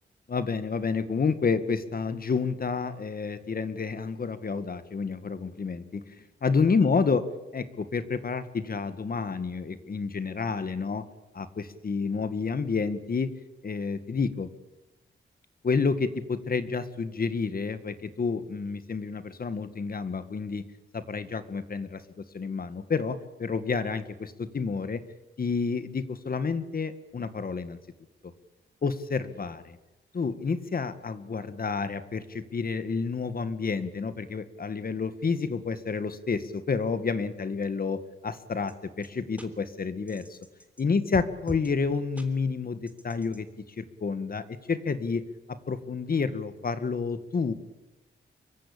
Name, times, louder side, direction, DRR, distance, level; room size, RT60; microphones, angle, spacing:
voice 1, 0.3-6.0 6.4-7.2 7.5-11.0 11.3-13.3 13.6-14.5 15.6-20.6 20.9-25.0 25.4-27.8 28.8-29.8 30.1-40.4 40.8-43.5 43.8-45.2 45.5-47.5, left 5 dB, 50° left, 11 dB, 1.9 m, -29 dB
sound 1, 38.7-38.8 39.0-39.1 39.4-39.5 40.1-40.8 41.1-41.7 42.2-42.3 42.9-43.4, right 1 dB, 5° right, 3.5 m, -40 dB
24.5 x 23.0 x 8.7 m, 1.0 s
wide cardioid pair, 95°, 20 cm